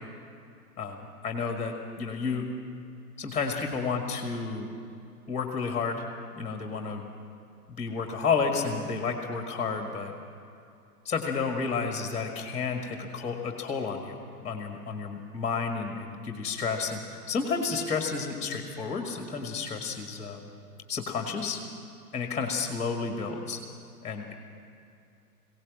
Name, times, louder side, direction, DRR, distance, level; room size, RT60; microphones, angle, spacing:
voice 1, 0.8-2.4 3.2-4.7 5.3-6.0 6.3-7.0 7.7-10.1 11.0-17.0 17.3-20.5 20.9-21.6 22.1-23.6 24.0-24.3, left 5 dB, 15° left, 3 dB, 1.7 m, -31 dB
21.0 x 17.5 x 7.5 m, 2.6 s
figure-of-eight pair, 125°, 49 cm